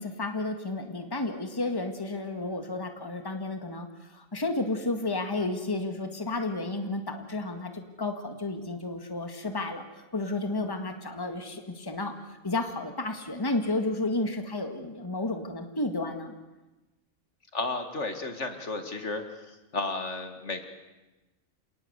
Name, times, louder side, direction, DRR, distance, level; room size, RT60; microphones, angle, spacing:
voice 1, 0.0-9.8 10.1-16.3, left 2 dB, 15° left, 6 dB, 1.9 m, -32 dB
voice 2, 17.5-19.2 19.5-20.7, left 3 dB, 60° left, 7 dB, 2.2 m, -33 dB
27.5 x 19.0 x 8.1 m, 1.1 s
omnidirectional pair, 1.4 m